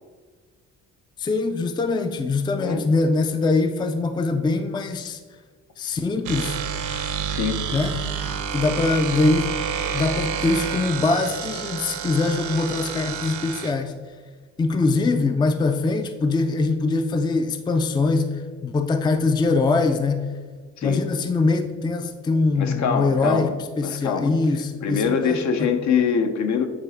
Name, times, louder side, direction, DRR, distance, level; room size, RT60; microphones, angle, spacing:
voice 1, 1.2-5.2 5.8-6.6 7.7-8.0 8.5-9.5 9.9-14.0 14.6-20.3 20.8-25.7, left 3 dB, 15° left, 8 dB, 0.4 m, -23 dB
sound 1, 6.2-13.7, right 7 dB, 70° right, 0.8 m, -29 dB
voice 2, 7.3-7.6 20.8-21.0 22.6-23.5 23.8-24.3 24.8-26.7, left 6 dB, 65° left, 7 dB, 0.8 m, -23 dB
8.9 x 3.2 x 4.2 m, 1.4 s
cardioid pair, 90°, 30 cm